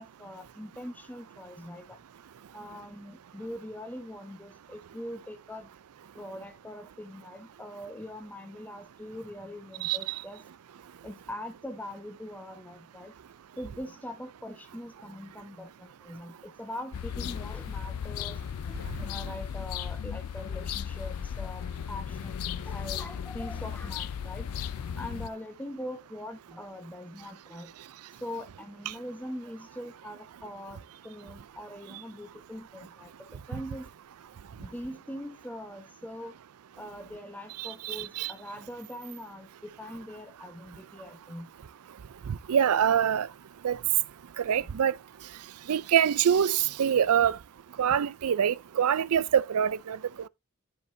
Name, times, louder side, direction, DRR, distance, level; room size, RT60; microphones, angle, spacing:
voice 1, 0.0-2.0 2.5-5.7 6.1-10.4 11.0-13.1 13.6-18.4 18.7-24.5 25.0-27.7 28.2-33.9 34.6-36.3 36.8-41.5, left 1 dB, 5° left, 0.9 m, -42 dB
voice 2, 9.8-10.2 37.6-38.3 42.3-43.3 43.6-43.8 44.4-44.9 45.7-47.4 47.8-50.0, right 8 dB, 80° right, 0.4 m, -25 dB
sound 1, 16.9-25.3, left 8 dB, 80° left, 0.4 m, -36 dB
12.5 x 5.2 x 2.7 m
head